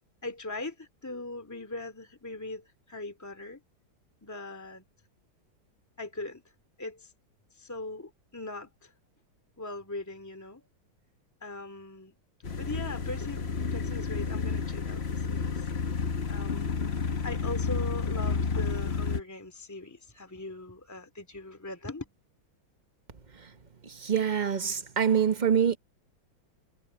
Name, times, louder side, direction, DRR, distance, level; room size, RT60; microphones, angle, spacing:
voice 1, 0.2-3.6 4.2-4.8 6.0-6.4 6.8-7.1 7.5-8.9 9.6-10.6 11.4-12.1 12.6-15.7 16.3-16.8 17.2-22.1, left 2 dB, 10° left, 2.7 m, -40 dB
sound 1, 12.4-19.2, left 5 dB, 40° left, 1.1 m, -31 dB
voice 2, 23.9-25.8, right 7 dB, 30° right, 0.9 m, -25 dB
omnidirectional pair, 2.2 m